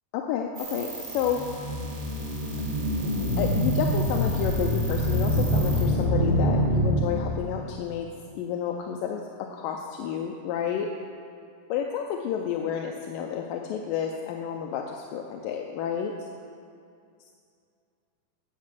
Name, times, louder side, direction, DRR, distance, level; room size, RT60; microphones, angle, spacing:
voice 1, 0.1-1.4 3.4-8.1 8.4-10.9 11.7-16.1, left 8 dB, 80° left, 2 dB, 2.1 m, -30 dB
sound 1, 0.6-5.8, right 4 dB, 75° right, 4.4 m, -36 dB
sound 2, 1.2-7.6, equal, 40° left, 4.5 m, -26 dB
13.5 x 6.5 x 7.6 m, 2.4 s
omnidirectional pair, 4.4 m